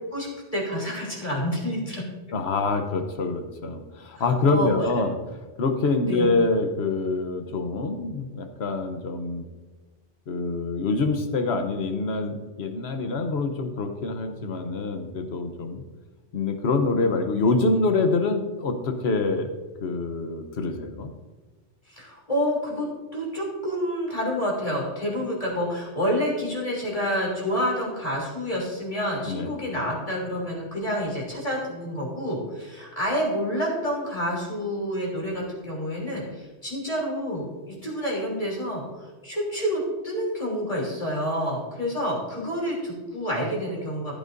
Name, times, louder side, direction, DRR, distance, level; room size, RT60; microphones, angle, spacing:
voice 1, 0.1-2.0 4.1-4.2 4.5-4.7 6.0-6.3 21.9-22.9 23.1-44.1, equal, 30° left, -4 dB, 3.2 m, -28 dB
voice 2, 2.3-5.1 5.6-9.5 10.3-15.8 16.3-19.5 19.8-21.1 29.3-29.5, left 3 dB, 60° left, 6 dB, 1.2 m, -25 dB
14.5 x 8.6 x 2.6 m, 1.3 s
omnidirectional pair, 1.2 m